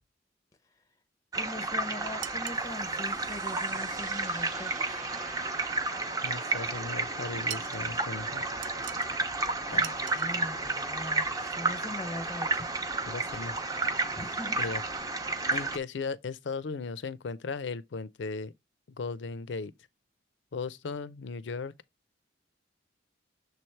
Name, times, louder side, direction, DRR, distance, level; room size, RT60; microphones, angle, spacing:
voice 1, 1.3-4.8 9.7-12.6 14.1-14.6, left 1 dB, 20° left, 0.6 m, -41 dB
sound 1, 1.3-15.8, right 3 dB, 20° right, 0.6 m, -32 dB
sound 2, 2.2-2.7 7.5-7.8 8.6-9.2 9.8-10.3, right 13 dB, 75° right, 0.4 m, -42 dB
sound 3, 2.6-9.8, right 3 dB, 45° right, 0.8 m, -49 dB
voice 2, 6.2-8.4 9.7-9.9 13.0-13.6 14.6-14.8 15.5-18.5 19.0-19.7 20.5-21.7, left 4 dB, 80° left, 0.5 m, -36 dB
6.8 x 3.2 x 4.3 m
head